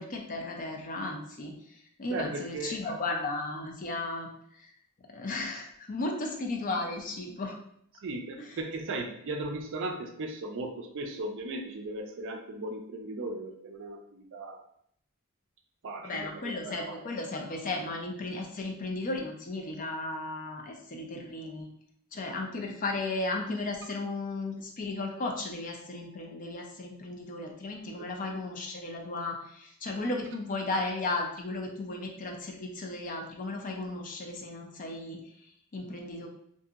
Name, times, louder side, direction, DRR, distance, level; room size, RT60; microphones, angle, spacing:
voice 1, 0.0-4.3 4.6-4.7 5.1-7.6 16.0-21.7 22.1-35.2 35.7-36.3, left 2 dB, 40° left, 2 dB, 0.5 m, -35 dB
voice 2, 2.1-2.9 8.0-14.6 15.8-17.0 28.0-28.4, right 2 dB, 60° right, 4 dB, 0.4 m, -37 dB
2.7 x 2.6 x 2.4 m, 0.69 s
head